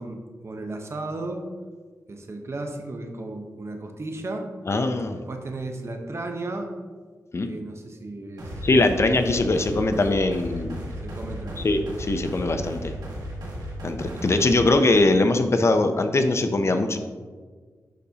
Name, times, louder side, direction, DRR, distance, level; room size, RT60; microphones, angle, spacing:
voice 1, 0.0-1.5 2.1-4.5 5.1-6.7 7.5-8.5 11.0-11.7, right 2 dB, 45° right, 4 dB, 0.8 m, -34 dB
voice 2, 4.7-5.2 7.3-7.5 8.6-10.8 11.6-12.8 13.8-17.0, left 2 dB, 45° left, 7 dB, 0.5 m, -21 dB
sound 1, 8.4-14.6, equal, 80° right, 1.6 m, -35 dB
10.0 x 4.1 x 2.8 m, 1.5 s
cardioid pair, 75°, 7 cm